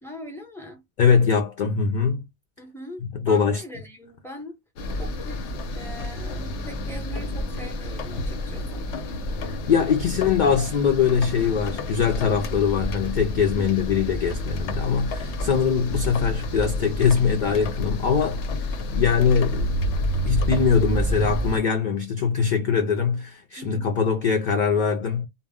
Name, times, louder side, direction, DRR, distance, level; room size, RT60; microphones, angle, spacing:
voice 1, 0.0-0.8 2.6-4.5 5.0-5.4 5.7-8.8 13.5-13.7 23.6-23.9, equal, 5° left, 0.4 m, -41 dB
voice 2, 1.0-2.2 3.0-3.6 9.5-19.7 20.2-25.3, left 6 dB, 60° left, 0.5 m, -22 dB
sound 1, 4.8-21.6, left 1 dB, 90° left, 0.9 m, -29 dB
2.1 x 2.0 x 3.5 m
omnidirectional pair, 1.2 m